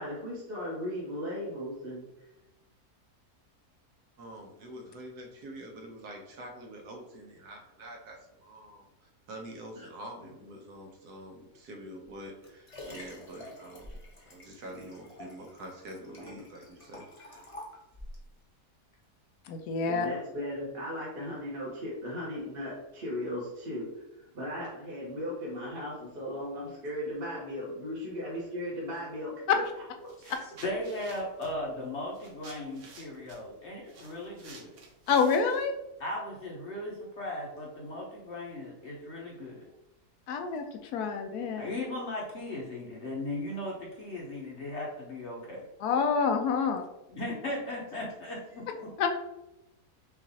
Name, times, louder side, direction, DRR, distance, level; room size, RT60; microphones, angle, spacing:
voice 1, 0.0-2.1 9.8-9.9 19.8-29.6 30.2-30.3, left 1 dB, 40° right, -7 dB, 1.1 m, -37 dB
voice 2, 4.2-14.0 14.3-17.5, right 1 dB, 80° right, 1 dB, 1.4 m, -46 dB
Liquid, 12.0-18.3 18.9-19.0, left 1 dB, 35° left, 0.6 m, -48 dB
voice 3, 19.5-20.1 29.5-29.6 35.1-35.7 40.3-41.7 45.8-46.8 49.0-49.1, left 5 dB, 80° left, 5 dB, 1.1 m, -27 dB
sound 1, 29.6-29.8 30.1-35.9, right 3 dB, 60° right, 1.0 m, -52 dB
voice 4, 30.0-34.7 36.0-39.6 41.6-45.6 47.2-48.9, left 1 dB, 55° left, -2 dB, 0.9 m, -37 dB
5.8 x 2.5 x 2.8 m, 0.91 s
omnidirectional pair, 1.7 m